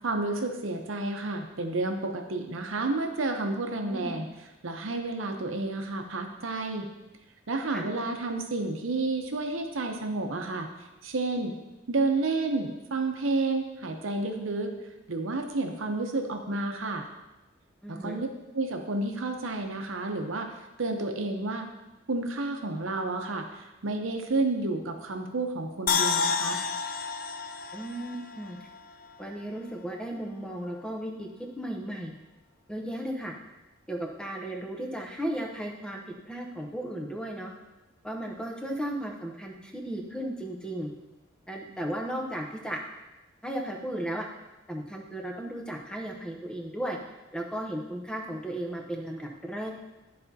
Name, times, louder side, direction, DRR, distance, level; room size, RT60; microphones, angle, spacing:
voice 1, 0.0-4.3 4.6-6.9 7.5-10.7 11.0-11.5 11.9-14.7 15.1-17.1 17.9-18.3 18.5-21.7 22.1-26.6, right 2 dB, 80° right, 4 dB, 0.8 m, -30 dB
voice 2, 3.8-4.2 7.7-7.9 17.8-18.2 27.7-28.6 29.2-31.3 31.6-32.2 32.7-33.3 33.9-36.0 36.3-37.5 38.0-40.9 41.5-42.8 43.4-44.3 44.7-47.0 47.3-49.7, right 1 dB, 5° left, 1 dB, 0.8 m, -35 dB
sound 1, 25.9-29.1 29.4-29.5, left 6 dB, 45° left, 0.4 m, -30 dB
12.5 x 4.2 x 2.8 m, 1.0 s
head